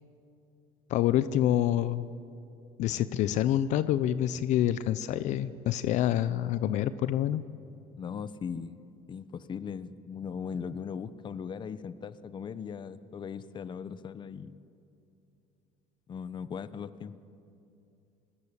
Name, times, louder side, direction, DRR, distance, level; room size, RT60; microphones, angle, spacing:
voice 1, 0.9-2.0 2.8-7.4, left 12 dB, 65° left, 14 dB, 0.8 m, -27 dB
voice 2, 8.0-8.8 9.1-14.6 16.1-17.1, left 6 dB, 35° left, 15 dB, 1.0 m, -39 dB
29.0 x 20.5 x 8.4 m, 2.7 s
cardioid pair, 115°, 13 cm